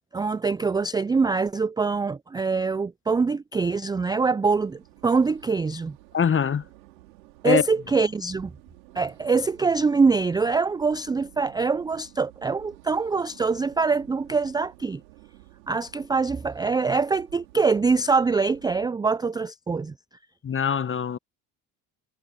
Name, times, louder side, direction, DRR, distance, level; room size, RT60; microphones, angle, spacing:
voice 1, 0.1-6.0 7.4-8.5 9.0-15.0 15.7-19.9, right 4 dB, 10° right, 0.3 m, -24 dB
sound 1, 4.5-18.9, right 19 dB, 85° right, 4.8 m, -52 dB
voice 2, 6.1-6.6 7.4-7.6 20.4-21.2, left 7 dB, 25° left, 0.9 m, -23 dB
hypercardioid pair, 65°, 49 cm